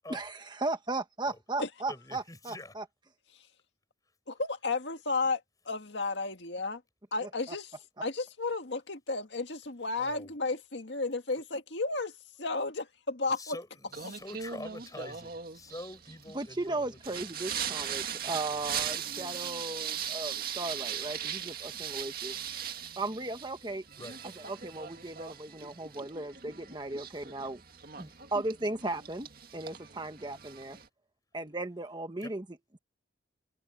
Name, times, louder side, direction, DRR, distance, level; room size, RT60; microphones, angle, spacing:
voice 1, 0.1-2.8 7.5-7.6 16.3-22.4 23.0-23.8 24.4-27.6 28.0-30.8 31.3-32.4, right 2 dB, 25° right, 1.2 m, -36 dB
voice 2, 1.9-2.7 10.0-10.3 13.3-17.2 24.0-24.2 32.2-32.3, left 1 dB, 20° left, 5.8 m, -45 dB
voice 3, 4.3-6.8 7.1-7.7 8.0-13.6, left 3 dB, 75° left, 1.9 m, -33 dB
Singing, 13.9-30.9, right 8 dB, 55° right, 2.0 m, -39 dB
head